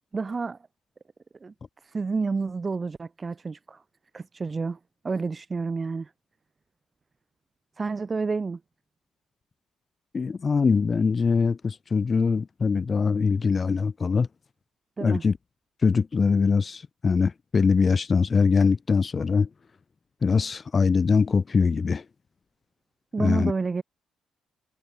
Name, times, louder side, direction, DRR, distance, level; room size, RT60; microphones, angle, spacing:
voice 1, 0.1-0.6 1.4-1.5 1.8-3.8 4.1-4.8 5.0-6.1 7.8-8.6 15.0-15.2 23.1-23.8, right 4 dB, 30° right, 3.3 m, -29 dB
voice 2, 10.1-14.3 15.0-15.3 15.8-19.5 20.2-22.1 23.2-23.5, left 5 dB, 35° left, 2.0 m, -22 dB
cardioid pair, 90°, 0 cm